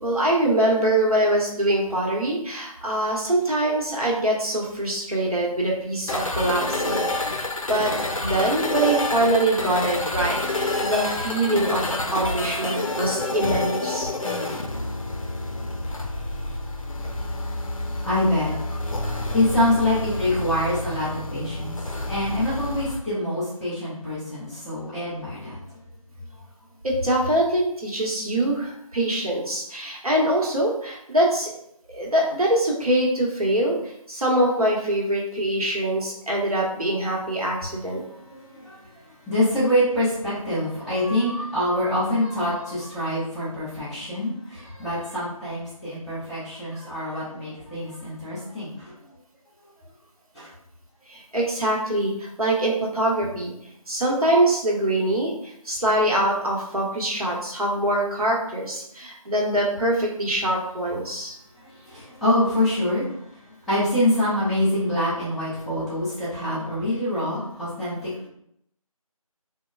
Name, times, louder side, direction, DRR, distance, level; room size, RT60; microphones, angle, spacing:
voice 1, 0.0-7.1 7.4-7.9 8.2-14.1 26.8-31.5 31.9-38.0 51.1-53.5 53.9-61.3, right 1 dB, 75° right, -2 dB, 1.0 m, -24 dB
sound 1, 6.1-23.0, left 2 dB, 65° left, 0.5 m, -28 dB
voice 2, 15.9-21.8 22.1-25.7 38.1-48.9 50.3-50.5 61.6-68.3, left 1 dB, ahead, -15 dB, 0.5 m, -26 dB
3.0 x 2.2 x 2.2 m, 0.75 s
figure-of-eight pair, 175°, 19 cm